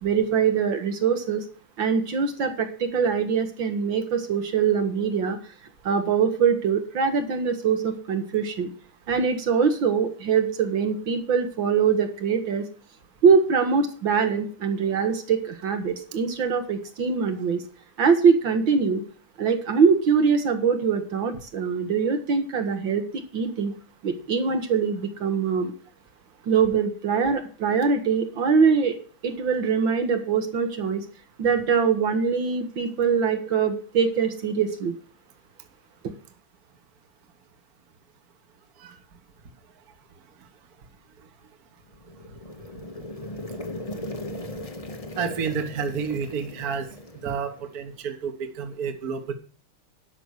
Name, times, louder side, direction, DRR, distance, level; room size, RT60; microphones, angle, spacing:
voice 1, 0.0-1.5 1.8-5.4 5.8-8.7 9.1-12.7 13.2-17.6 18.0-19.0 19.4-23.1 23.3-23.7 24.0-25.7 26.4-29.0 29.2-31.1 31.4-34.9 36.0-36.1, right 6 dB, 65° right, 6 dB, 2.0 m, -23 dB
sound 1, 41.9-47.9, left 1 dB, 25° left, 0.8 m, -38 dB
voice 2, 45.2-46.9 47.2-49.3, right 6 dB, 50° right, 7 dB, 1.7 m, -30 dB
12.5 x 5.9 x 6.5 m, 0.40 s
omnidirectional pair, 2.3 m